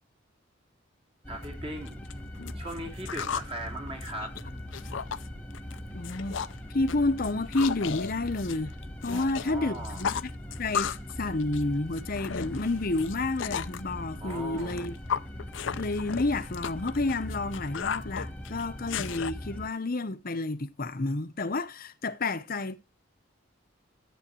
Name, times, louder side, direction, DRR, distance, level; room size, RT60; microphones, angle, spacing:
sound 1, 1.2-19.7, left 1 dB, 5° left, 1.0 m, -41 dB
voice 1, 1.3-2.0 2.5-4.5 9.1-10.1 14.2-14.9, right 1 dB, 30° right, 2.6 m, -39 dB
sound 2, 1.4-1.5 1.9-3.5 3.9-5.3 5.5-5.8 6.0-6.6 6.9-9.5 9.7-11.1 11.4-13.8 14.3-19.3, left 7 dB, 70° left, 0.5 m, -35 dB
voice 2, 5.9-6.4 6.7-8.7 9.0-10.3 10.6-10.9 11.2-14.9 15.8-22.8, left 2 dB, 45° left, 0.8 m, -30 dB
12.5 x 7.9 x 2.9 m
head